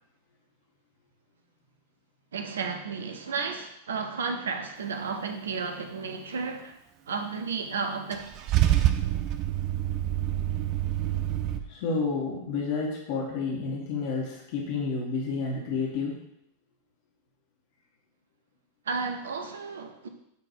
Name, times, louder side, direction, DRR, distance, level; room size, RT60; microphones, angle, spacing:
voice 1, 2.3-6.8 7.1-8.2 18.9-20.1, right 5 dB, 65° right, 6 dB, 0.9 m, -33 dB
Car / Engine starting / Idling, 8.1-11.6, right 13 dB, 40° right, 0.6 m, -26 dB
voice 2, 11.7-16.2, left 4 dB, 50° left, -2 dB, 1.9 m, -30 dB
8.7 x 3.9 x 4.6 m, 0.78 s
figure-of-eight pair, 90°, 0 cm